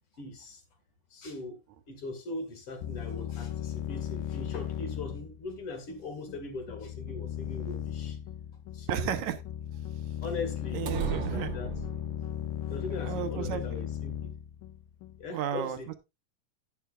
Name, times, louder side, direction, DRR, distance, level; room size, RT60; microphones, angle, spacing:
voice 1, 0.2-0.6 1.1-1.6 1.9-8.2 8.7-9.1 10.2-11.7 12.7-14.3 15.2-15.9, left 3 dB, 45° left, 2.6 m, -40 dB
sound 1, 2.8-15.3, left 11 dB, 85° left, 2.4 m, -37 dB
voice 2, 8.9-9.4 10.7-11.5 13.0-13.7 15.3-15.9, right 9 dB, 70° right, 2.1 m, -33 dB
sound 2, 10.9-12.5, right 9 dB, 90° right, 1.0 m, -35 dB
11.0 x 10.5 x 2.4 m
omnidirectional pair, 3.8 m